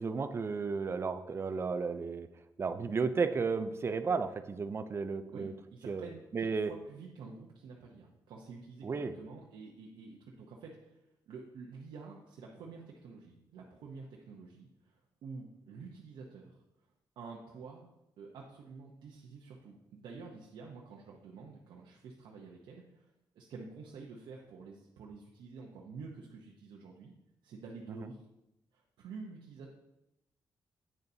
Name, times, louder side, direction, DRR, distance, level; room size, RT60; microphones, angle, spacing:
voice 1, 0.0-2.3 2.6-5.5 5.9-6.7 8.8-9.1 28.0-28.1, right 4 dB, 35° right, 10 dB, 0.5 m, -33 dB
voice 2, 5.3-11.0 11.3-16.5 17.2-17.9 18.2-27.1 27.4-28.2 28.7-29.7, right 4 dB, 90° right, -2 dB, 0.8 m, -49 dB
8.7 x 6.7 x 2.7 m, 0.89 s
cardioid pair, 115°, 8 cm